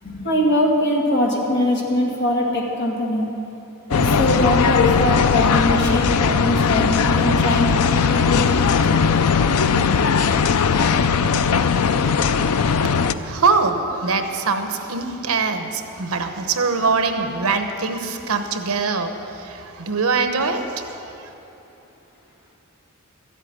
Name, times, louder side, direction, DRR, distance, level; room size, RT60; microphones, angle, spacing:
voice 1, 0.0-3.3 3.9-9.1, left 1 dB, 50° left, -2 dB, 2.2 m, -22 dB
sound 1, 3.9-13.1, left 6 dB, 80° left, 0.5 m, -18 dB
voice 2, 13.1-20.9, right 4 dB, 75° right, 6 dB, 1.0 m, -23 dB
13.0 x 8.3 x 8.9 m, 3.0 s
head